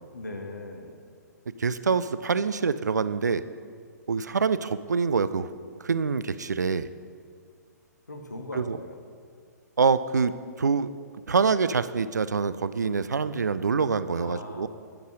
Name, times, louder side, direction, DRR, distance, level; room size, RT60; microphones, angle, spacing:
voice 1, 0.1-0.9 8.1-9.0 14.1-14.7, left 2 dB, 75° left, 3 dB, 1.4 m, -39 dB
voice 2, 1.6-3.4 4.1-5.5 5.8-6.9 8.6-8.8 9.8-10.3 10.6-10.9 11.3-14.7, right 5 dB, 70° right, 14 dB, 0.4 m, -25 dB
10.5 x 5.4 x 6.3 m, 2.1 s
figure-of-eight pair, 120°, 10 cm